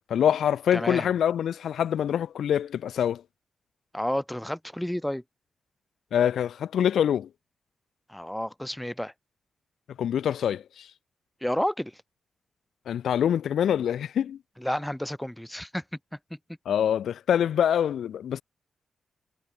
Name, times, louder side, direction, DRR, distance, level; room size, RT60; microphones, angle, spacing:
voice 1, 0.1-3.2 6.1-7.3 10.0-10.9 12.9-14.4 16.7-18.4, left 9 dB, 90° left, 0.8 m, -25 dB
voice 2, 0.7-1.1 3.9-5.2 8.1-9.1 11.4-12.0 14.6-15.8, equal, 5° left, 1.4 m, -30 dB
wide cardioid pair, 125°, 0 cm